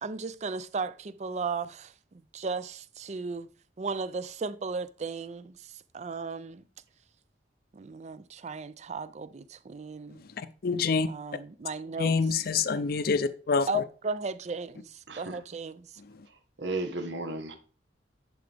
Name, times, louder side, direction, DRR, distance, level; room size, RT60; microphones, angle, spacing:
voice 1, 0.0-3.5 3.8-6.6 7.7-10.2 11.1-12.1 13.7-15.9, right 4 dB, 40° right, 0.4 m, -36 dB
voice 2, 10.4-11.1 12.0-13.8, left 5 dB, 55° left, 0.5 m, -26 dB
voice 3, 15.1-15.4 16.3-17.6, right 2 dB, 85° right, 1.3 m, -35 dB
10.5 x 4.6 x 3.4 m
head